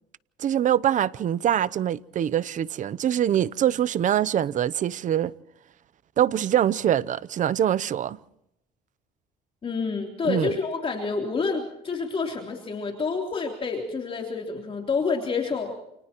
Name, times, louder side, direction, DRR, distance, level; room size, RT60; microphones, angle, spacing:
voice 1, 0.4-5.3 6.2-8.2 10.2-10.5, right 10 dB, 50° right, 0.7 m, -24 dB
voice 2, 9.6-15.7, left 4 dB, 35° left, 3.4 m, -28 dB
29.5 x 29.0 x 3.0 m
cardioid pair, 110°, 17 cm